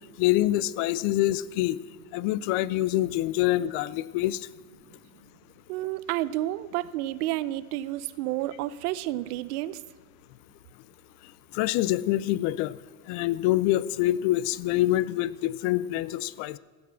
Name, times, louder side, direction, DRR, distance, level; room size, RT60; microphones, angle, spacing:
voice 1, 0.2-1.8 2.1-4.4 11.5-12.8 13.1-16.6, left 15 dB, 50° left, 19 dB, 0.5 m, -25 dB
voice 2, 5.7-9.8, right 15 dB, 75° right, 16 dB, 0.7 m, -30 dB
16.0 x 6.1 x 6.2 m, 1.4 s
supercardioid pair, 145°, 44 cm